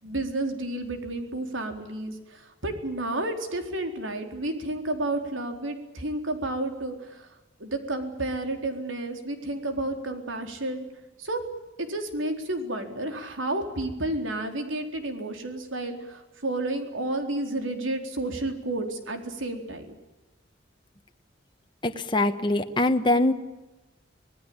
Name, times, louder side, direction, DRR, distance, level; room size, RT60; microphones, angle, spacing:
voice 1, 0.0-7.3 7.6-10.9 11.2-11.4 11.8-20.0, right 2 dB, 85° right, 5 dB, 4.1 m, -31 dB
voice 2, 21.8-23.3, left 2 dB, 25° left, 6 dB, 1.3 m, -23 dB
26.0 x 19.0 x 8.9 m, 1.1 s
head